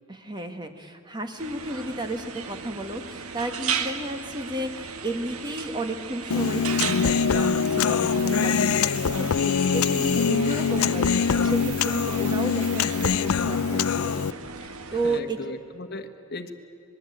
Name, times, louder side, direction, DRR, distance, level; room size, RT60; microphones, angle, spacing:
voice 1, 0.1-14.3 14.6-15.4, right 1 dB, 20° right, 6 dB, 1.6 m, -33 dB
sound 1, 1.4-15.2, right 6 dB, 90° right, 1.5 m, -36 dB
Human voice, 6.3-14.3, left 6 dB, 85° left, 0.5 m, -23 dB
sound 2, 8.2-10.3 10.6-13.3, right 12 dB, 55° right, 1.2 m, -43 dB
voice 2, 14.9-16.5, left 2 dB, 45° left, 7 dB, 1.4 m, -37 dB
26.0 x 20.5 x 8.7 m, 2.6 s
head